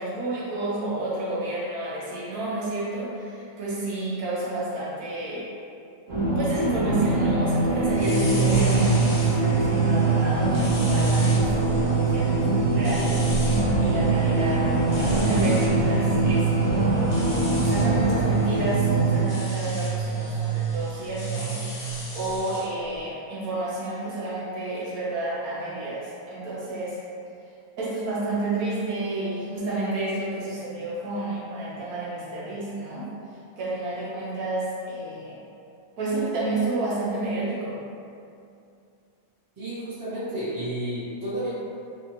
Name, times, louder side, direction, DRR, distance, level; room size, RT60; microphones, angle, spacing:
voice 1, 0.0-5.5 6.4-13.2 13.8-14.7 15.0-17.1 17.6-27.0 27.8-33.0 33.6-35.4 36.0-37.7, right 2 dB, 70° right, -7 dB, 1.1 m, -30 dB
sound 1, 6.1-19.2, right 1 dB, 55° right, 0.8 m, -24 dB
sound 2, 7.9-22.6, right 7 dB, 40° left, 0.7 m, -26 dB
voice 2, 39.6-41.5, right 1 dB, 20° right, -11 dB, 0.6 m, -31 dB
2.8 x 2.6 x 2.8 m, 2.5 s
omnidirectional pair, 1.7 m